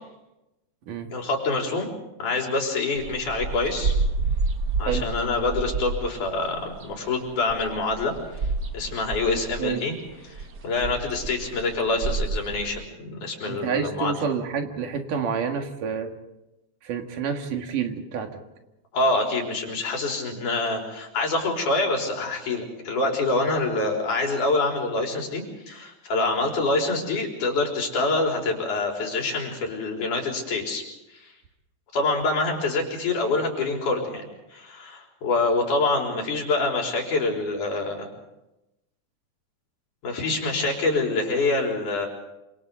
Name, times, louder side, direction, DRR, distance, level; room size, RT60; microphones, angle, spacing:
voice 1, 1.1-1.9 2.2-3.9 4.8-8.1 8.7-9.9 10.3-10.4 10.6-14.2 18.9-30.8 31.1-31.3 31.9-34.2 34.5-38.1 40.0-42.1, left 3 dB, 70° left, 0 dB, 5.5 m, -26 dB
sound 1, 3.0-12.7, right 4 dB, 40° right, 1.5 m, -29 dB
voice 2, 13.5-16.1 16.8-18.4, right 6 dB, 80° right, 4 dB, 3.4 m, -28 dB
27.5 x 26.5 x 3.9 m, 0.94 s
omnidirectional pair, 3.7 m